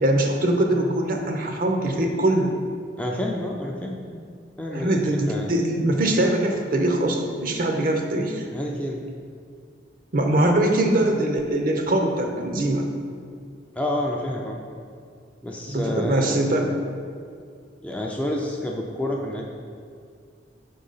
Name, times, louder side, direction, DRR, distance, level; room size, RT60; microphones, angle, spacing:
voice 1, 0.0-2.5 4.7-8.5 10.1-12.9 15.7-16.7, right 1 dB, 45° right, 3 dB, 0.6 m, -22 dB
voice 2, 3.0-4.2 4.6-5.0 5.3-5.5 8.5-9.0 13.8-14.6 15.4-16.5 17.8-19.6, left 1 dB, 5° left, -1 dB, 0.4 m, -29 dB
5.7 x 3.8 x 5.5 m, 2.2 s
head